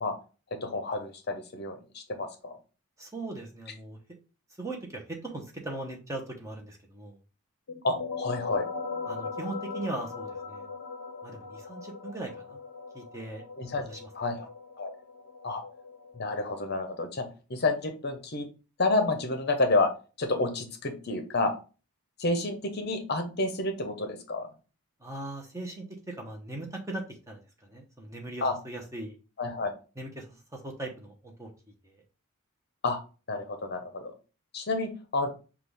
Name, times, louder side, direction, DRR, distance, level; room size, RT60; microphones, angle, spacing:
voice 1, 0.6-2.6 7.8-8.6 13.6-13.9 14.1-14.5 14.8-14.9 15.4-15.6 16.2-18.5 18.8-19.9 20.2-21.5 22.2-24.5 28.4-28.6 29.4-29.7 32.8-33.0 33.3-34.1 34.5-35.3, left 2 dB, 45° left, 6 dB, 0.7 m, -29 dB
voice 2, 3.0-4.0 4.6-7.1 9.1-10.6 11.2-12.6 12.9-13.4 13.8-14.1 25.0-27.4 27.7-29.1 30.0-30.4 30.6-31.5, right 2 dB, 15° right, 0 dB, 0.8 m, -39 dB
sound 1, 7.7-17.1, left 4 dB, 85° left, 0.5 m, -40 dB
5.8 x 2.4 x 3.4 m, 0.33 s
head